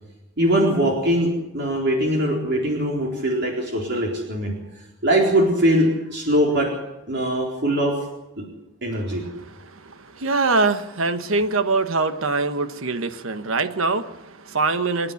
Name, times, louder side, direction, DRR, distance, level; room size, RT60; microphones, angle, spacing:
voice 1, 0.4-4.5 5.0-6.7 7.1-8.0 8.8-9.2, right 1 dB, 55° right, 0 dB, 4.2 m, -21 dB
voice 2, 8.9-15.1, right 3 dB, 80° right, 10 dB, 1.3 m, -24 dB
28.5 x 10.0 x 9.6 m, 0.99 s
head